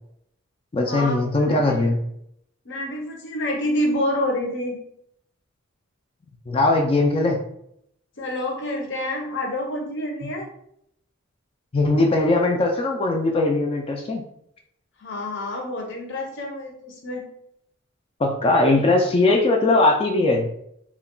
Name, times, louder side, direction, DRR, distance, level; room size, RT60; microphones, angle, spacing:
voice 1, 0.7-2.0 6.5-7.4 11.7-14.2 18.2-20.5, left 2 dB, 25° left, 2 dB, 0.3 m, -20 dB
voice 2, 1.5-1.8 2.7-4.8 8.2-10.5 15.0-17.2, left 1 dB, 55° left, 1 dB, 0.7 m, -27 dB
2.3 x 2.2 x 3.6 m, 0.73 s
head